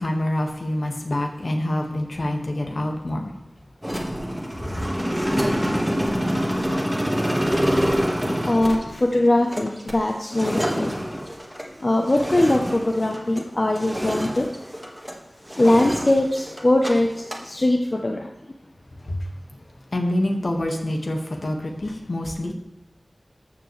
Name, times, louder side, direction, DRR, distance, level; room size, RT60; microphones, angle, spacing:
voice 1, 0.0-3.3 19.0-19.2 19.9-22.5, left 1 dB, 65° left, 2 dB, 1.6 m, -26 dB
sound 1, 3.8-13.5 13.8-15.2 15.5-16.9 17.2-17.4, equal, 5° right, 1.6 m, -26 dB
voice 2, 8.5-10.9 11.8-14.4 15.6-17.1 17.4-18.3, left 1 dB, 40° left, 2 dB, 0.8 m, -21 dB
13.5 x 7.1 x 3.2 m, 0.89 s
wide cardioid pair, 65°, 0 cm